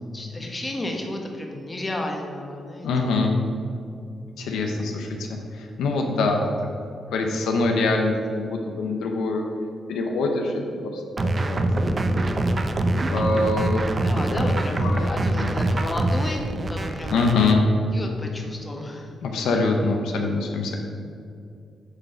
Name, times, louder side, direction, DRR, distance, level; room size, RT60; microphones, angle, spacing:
voice 1, 0.1-3.2 14.0-17.2 17.9-19.1, left 1 dB, 25° left, 1 dB, 1.3 m, -32 dB
voice 2, 2.8-3.3 4.4-6.5 7.1-9.4 9.9-10.5 10.9-11.0 11.4-12.0 12.3-12.4 13.1-13.8 14.3-14.5 14.8-15.1 15.4-15.5 17.1-17.6 19.2-20.8, left 3 dB, 85° left, 2 dB, 0.7 m, -24 dB
sound 1, 11.2-17.6, right 1 dB, 40° right, 0.6 m, -24 dB
8.2 x 3.9 x 5.6 m, 2.4 s
cardioid pair, 65°, 0 cm